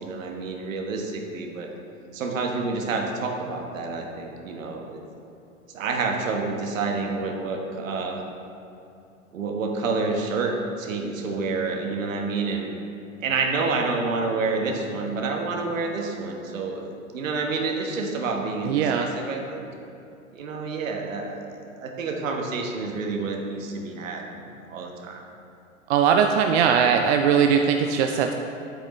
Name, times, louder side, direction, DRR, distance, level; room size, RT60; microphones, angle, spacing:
voice 1, 0.0-1.7 2.1-5.0 5.7-8.3 9.3-12.8 13.2-19.7 20.3-25.2, right 3 dB, 75° right, 2 dB, 1.3 m, -28 dB
voice 2, 18.6-19.1 25.9-28.3, right 7 dB, 55° right, 4 dB, 0.5 m, -20 dB
8.7 x 7.8 x 3.1 m, 2.7 s
hypercardioid pair, 105°, 40 cm